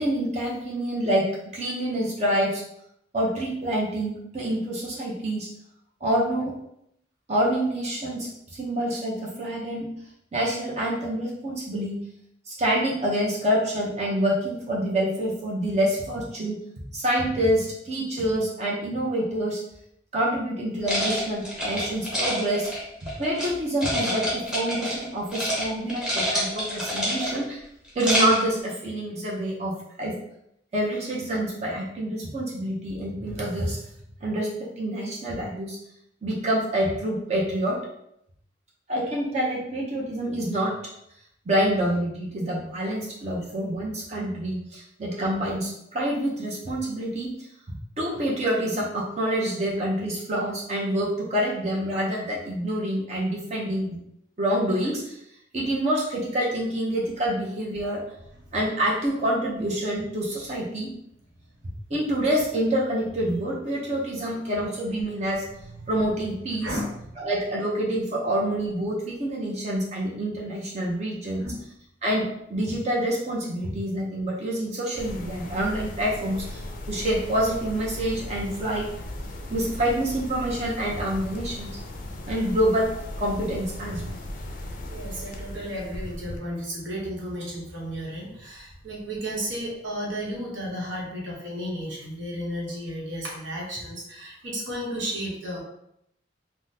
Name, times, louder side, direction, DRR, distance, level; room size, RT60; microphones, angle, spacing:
voice 1, 0.0-2.6 3.1-5.5 6.0-6.6 7.3-9.9 10.3-12.0 12.5-16.6 16.9-19.6 20.1-22.7 23.2-27.6 27.9-30.2 30.7-33.8 34.2-35.8 36.2-37.8 38.9-40.8 41.5-47.3 48.0-54.0 54.4-55.2 55.5-58.0 58.5-60.9 61.9-65.4 65.9-66.7 67.2-71.5 72.0-78.9 79.5-81.8 82.2-82.9 83.2-84.2, right 1 dB, 35° right, -4 dB, 0.5 m, -27 dB
sound 1, 20.8-23.5 23.8-25.0 25.3-25.6 25.9-27.5 27.8-28.5, equal, 5° right, 0.8 m, -27 dB
voice 2, 66.6-66.9 71.4-71.6 84.9-95.6, equal, 85° right, -3 dB, 0.9 m, -33 dB
sound 2, 75.0-86.4, left 1 dB, 45° left, 0.4 m, -37 dB
3.5 x 2.0 x 2.7 m, 0.77 s
head